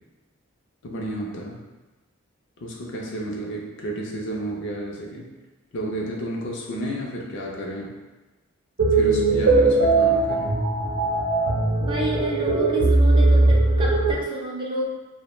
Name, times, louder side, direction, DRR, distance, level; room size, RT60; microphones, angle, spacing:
voice 1, 0.8-1.6 2.6-5.3 5.7-7.9 8.9-10.6, right 1 dB, 60° left, -2 dB, 0.5 m, -31 dB
sound 1, 8.8-14.1, right 2 dB, 85° right, 0.6 m, -19 dB
voice 2, 11.8-14.9, right 1 dB, 25° right, -3 dB, 0.4 m, -30 dB
2.2 x 2.0 x 3.0 m, 1.2 s
head